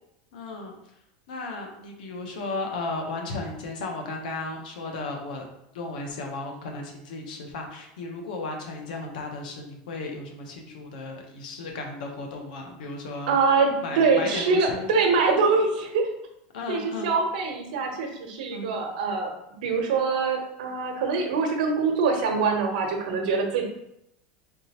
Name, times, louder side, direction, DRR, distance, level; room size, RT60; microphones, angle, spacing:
voice 1, 0.3-0.7 1.3-5.4 5.7-13.4 13.8-14.9 16.5-17.2 18.5-18.7, left 3 dB, 80° left, 2 dB, 1.0 m, -35 dB
voice 2, 13.3-16.1 16.7-19.3 19.6-23.6, right 4 dB, 75° right, 3 dB, 0.9 m, -24 dB
3.8 x 3.7 x 2.9 m, 0.80 s
supercardioid pair, 165°, 4 cm